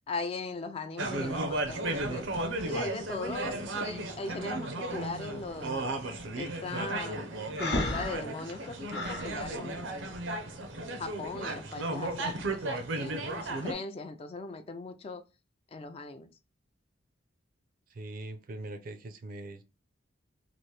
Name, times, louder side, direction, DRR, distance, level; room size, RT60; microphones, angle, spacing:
voice 1, 0.1-2.3 2.7-5.9 6.4-10.2 11.0-15.2 15.7-16.3, left 3 dB, 30° left, 0.3 m, -39 dB
sound 1, 1.0-13.7, right 2 dB, 90° right, 0.6 m, -35 dB
Breathing, 7.6-9.3, left 2 dB, 65° left, 0.9 m, -33 dB
voice 2, 17.9-19.6, right 2 dB, 50° right, 0.4 m, -42 dB
3.1 x 2.5 x 3.1 m
head